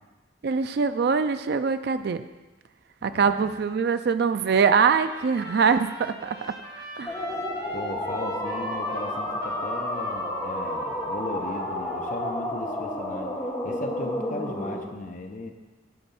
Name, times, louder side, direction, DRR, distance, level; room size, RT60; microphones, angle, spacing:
voice 1, 0.4-2.2 3.0-6.5 7.0-7.3, right 5 dB, 60° right, 10 dB, 0.4 m, -23 dB
voice 2, 3.0-3.5 7.7-13.3 13.6-15.5, left 2 dB, 45° left, 4 dB, 0.8 m, -37 dB
Trumpet, 4.4-12.5, left 1 dB, 20° right, 1.3 m, -43 dB
sound 1, 7.1-14.8, left 1 dB, 20° left, 1.6 m, -31 dB
9.5 x 4.0 x 7.0 m, 1.2 s
head